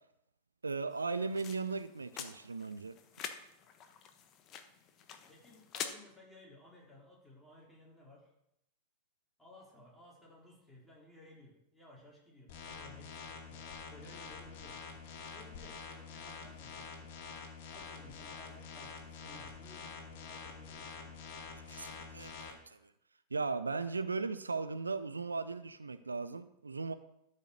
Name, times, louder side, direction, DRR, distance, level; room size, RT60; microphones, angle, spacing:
voice 1, 0.6-2.9 21.7-22.9 23.3-26.9, right 4 dB, 75° right, 12 dB, 0.5 m, -37 dB
sound 1, 0.9-5.9, left 8 dB, 35° left, 1.1 m, -47 dB
voice 2, 5.3-8.3 9.4-14.9 15.3-17.0 17.7-21.2, left 1 dB, 5° left, -4 dB, 4.0 m, -58 dB
sound 2, 12.5-22.5, left 5 dB, 50° left, 2.3 m, -47 dB
12.5 x 5.6 x 6.5 m, 0.80 s
figure-of-eight pair, 90°, 0 cm